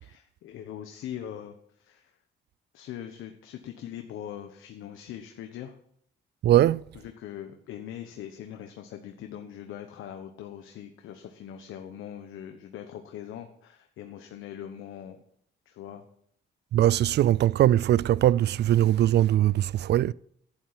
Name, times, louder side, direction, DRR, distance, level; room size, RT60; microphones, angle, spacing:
voice 1, 0.0-2.1 2.7-5.8 6.9-15.2 15.7-16.1, left 10 dB, 85° left, 1.1 m, -41 dB
voice 2, 6.4-6.8 16.7-20.1, right 12 dB, 60° right, 0.4 m, -21 dB
11.0 x 9.3 x 7.5 m
cardioid pair, 90°, 20 cm